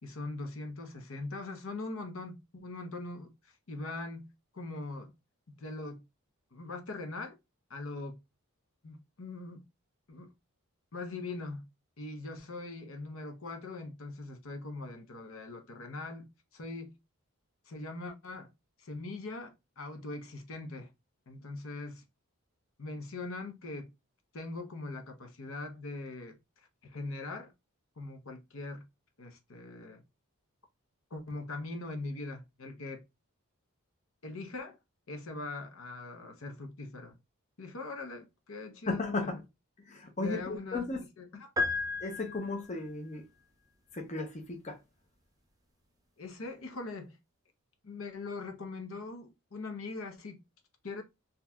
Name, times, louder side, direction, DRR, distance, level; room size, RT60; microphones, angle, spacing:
voice 1, 0.0-5.1 5.6-6.0 6.5-7.4 7.7-8.2 8.8-9.6 10.1-10.3 10.9-11.7 12.0-17.0 17.7-18.5 18.8-20.9 21.3-22.0 22.8-23.9 24.3-27.5 28.0-28.8 29.2-30.0 31.1-33.0 34.2-34.8 35.1-37.2 37.6-39.3 40.2-40.9 41.2-41.5 46.2-47.2 47.8-50.4 50.8-51.0, left 3 dB, 65° left, 0.8 m, -41 dB
voice 2, 38.9-39.4 39.9-41.0 42.0-43.2 43.9-44.8, left 3 dB, 30° left, 0.7 m, -35 dB
sound 1, 41.6-42.9, left 3 dB, 15° right, 0.4 m, -33 dB
3.8 x 2.8 x 2.2 m
head